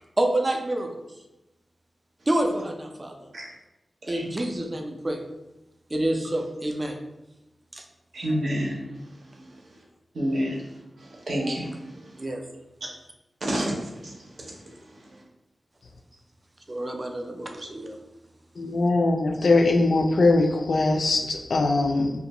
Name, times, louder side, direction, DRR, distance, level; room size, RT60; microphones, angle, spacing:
voice 1, 0.2-1.1 2.3-3.1 4.1-5.2 5.9-7.0 7.7-7.8 12.2-12.4 16.7-18.0, right 1 dB, 25° right, 3 dB, 0.4 m, -27 dB
voice 2, 8.1-8.9 10.1-10.6 11.3-11.8 13.4-14.1, equal, 65° right, -2 dB, 0.6 m, -27 dB
voice 3, 18.6-22.1, left 2 dB, 70° left, 4 dB, 0.3 m, -21 dB
2.5 x 2.2 x 2.9 m, 0.96 s
wide cardioid pair, 110°, 0 cm